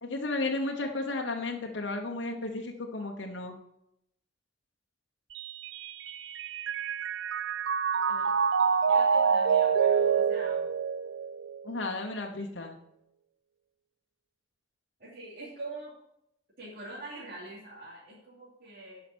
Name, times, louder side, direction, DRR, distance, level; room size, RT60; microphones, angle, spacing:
voice 1, 0.0-3.6 11.6-12.8, left 2 dB, 90° left, 1 dB, 1.1 m, -33 dB
Mallet percussion, 5.4-11.8, right 6 dB, 85° right, 0.4 m, -27 dB
voice 2, 8.1-8.4 8.8-10.7 15.0-15.9 16.6-19.0, right 2 dB, 60° right, -7 dB, 2.9 m, -44 dB
11.5 x 5.7 x 6.1 m, 0.78 s
head